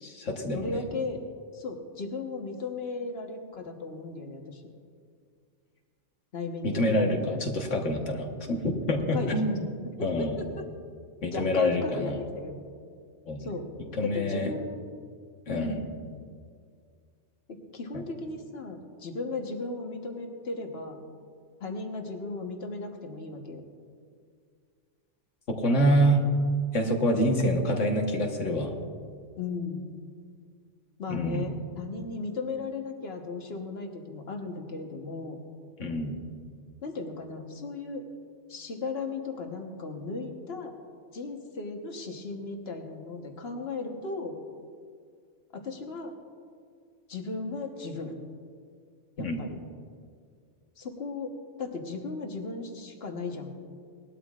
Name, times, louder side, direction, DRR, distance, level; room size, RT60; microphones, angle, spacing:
voice 1, 0.0-0.8 6.6-9.6 10.0-10.4 11.2-12.2 13.3-13.4 14.0-14.5 15.5-15.8 17.9-18.0 25.5-26.2 26.7-28.7 31.1-31.5 35.8-36.2 49.2-49.4, equal, 80° left, 2 dB, 1.6 m, -26 dB
voice 2, 0.5-1.2 1.5-4.6 6.3-7.4 9.1-9.5 9.8-10.6 11.3-12.6 13.4-13.7 14.0-15.0 15.5-15.9 17.5-21.0 21.6-23.6 29.4-29.9 31.0-35.4 36.8-38.0 38.5-40.7 41.1-44.4 45.5-46.1 47.1-48.2 49.2-49.5 50.8-53.5, left 3 dB, 55° left, 3 dB, 1.5 m, -36 dB
20.0 x 12.5 x 2.4 m, 2.1 s
omnidirectional pair, 1.2 m